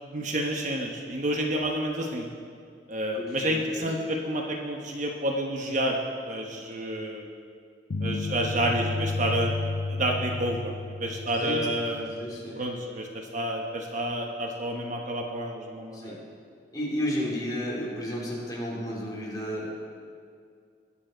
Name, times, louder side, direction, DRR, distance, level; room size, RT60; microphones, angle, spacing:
voice 1, 0.0-2.2 2.9-6.0 6.2-7.3 8.0-9.5 9.9-10.7 11.0-12.2 12.6-16.1, right 1 dB, 45° right, 1 dB, 1.0 m, -29 dB
voice 2, 3.1-3.9 11.3-11.8 12.2-12.6 15.9-16.2 16.7-19.7, equal, 20° left, -5 dB, 3.1 m, -32 dB
sound 1, 7.9-12.1, left 3 dB, 65° left, 0.5 m, -32 dB
21.0 x 7.6 x 4.5 m, 2.2 s
head